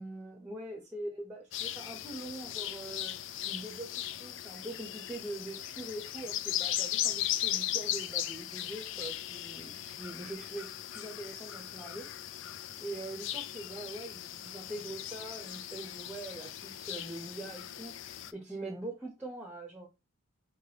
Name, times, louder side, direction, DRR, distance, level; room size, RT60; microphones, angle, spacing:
voice 1, 0.0-3.2 3.4-12.5 12.8-19.9, right 1 dB, 5° right, 0.7 m, -43 dB
sound 1, 1.5-18.3, left 12 dB, 65° left, 0.3 m, -38 dB
4.5 x 3.3 x 2.8 m
head